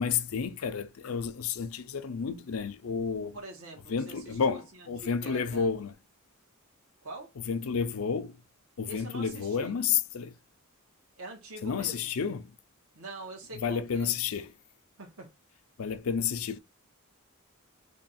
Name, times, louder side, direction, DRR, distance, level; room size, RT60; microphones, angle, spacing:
voice 1, 0.0-3.4 3.9-4.6 4.9-5.9 7.5-8.3 8.8-10.3 11.6-12.5 13.6-14.5 15.8-16.6, left 6 dB, 80° left, 0.5 m, -30 dB
voice 2, 3.3-5.7 7.0-7.3 8.9-9.8 11.2-12.1 12.9-14.1 15.0-15.3, right 2 dB, 85° right, 1.3 m, -44 dB
3.4 x 2.3 x 4.1 m
head